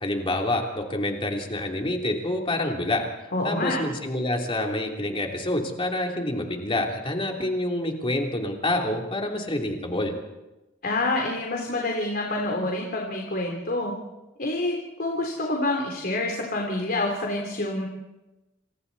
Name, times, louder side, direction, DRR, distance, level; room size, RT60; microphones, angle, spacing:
voice 1, 0.0-3.0 3.4-10.1, left 1 dB, 25° left, 1 dB, 3.3 m, -27 dB
voice 2, 3.3-3.8 10.8-13.9 14.4-17.9, left 2 dB, 50° left, 0 dB, 3.4 m, -27 dB
28.0 x 27.5 x 4.2 m, 1.0 s
head